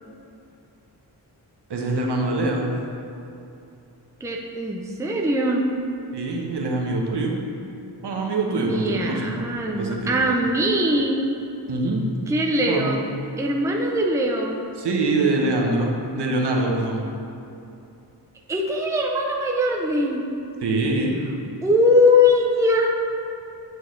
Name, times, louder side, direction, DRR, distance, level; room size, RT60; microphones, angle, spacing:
voice 1, 1.7-2.7 6.1-7.4 8.0-9.5 9.8-10.3 11.7-12.0 12.6-12.9 14.7-17.0 20.6-21.2, right 2 dB, 75° right, 0 dB, 1.0 m, -24 dB
voice 2, 4.2-5.6 8.5-11.2 12.3-13.0 13.4-14.6 18.5-20.2 21.6-22.9, left 1 dB, 5° right, 0 dB, 0.5 m, -21 dB
8.0 x 6.2 x 3.2 m, 2.7 s
wide cardioid pair, 140°, 42 cm